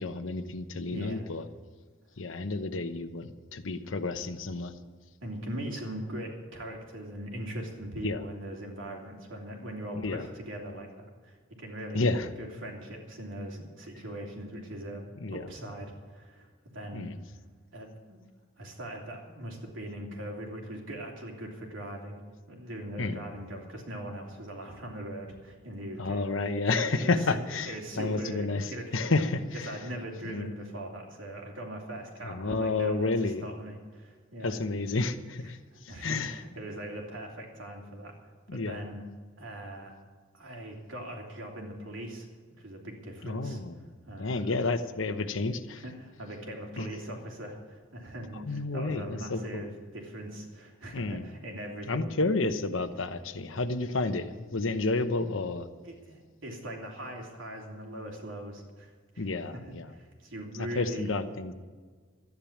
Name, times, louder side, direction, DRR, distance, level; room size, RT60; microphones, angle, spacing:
voice 1, 0.0-1.4 2.2-4.7 8.0-8.2 10.0-10.2 11.9-12.3 15.2-15.4 16.9-17.1 23.0-23.3 26.0-29.7 30.2-30.5 32.2-33.4 34.4-35.6 36.0-36.3 38.5-38.7 43.2-43.7 44.2-45.8 46.8-46.9 48.5-49.6 50.9-51.2 51.9-55.7 59.2-59.9 60.7-61.5, left 3 dB, 70° left, 9 dB, 0.9 m, -30 dB
voice 2, 0.9-1.3 5.2-12.0 12.4-17.1 17.7-18.2 18.6-22.2 22.5-27.4 27.6-29.2 29.6-34.6 35.5-38.1 38.5-39.0 39.4-40.0 40.3-42.3 42.6-43.6 44.0-44.5 45.8-52.1 55.8-61.1, right 1 dB, 70° right, 0 dB, 3.1 m, -41 dB
13.0 x 10.5 x 7.3 m, 1.5 s
head